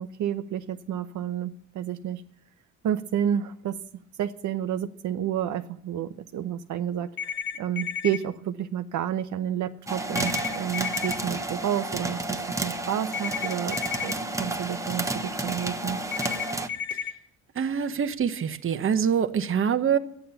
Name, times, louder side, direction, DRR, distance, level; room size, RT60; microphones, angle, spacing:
voice 1, 0.0-2.2 2.8-3.8 4.2-16.0, right 10 dB, 70° right, 7 dB, 0.8 m, -30 dB
sound 1, 7.2-8.2 10.2-11.2 13.1-14.1 16.1-17.1, left 7 dB, 40° left, 1.7 m, -32 dB
sound 2, 9.9-16.7, right 2 dB, 10° right, 1.2 m, -31 dB
voice 2, 17.5-20.0, right 7 dB, 45° right, 9 dB, 1.1 m, -25 dB
12.0 x 9.3 x 6.9 m, 0.70 s
cardioid pair, 90°, 30 cm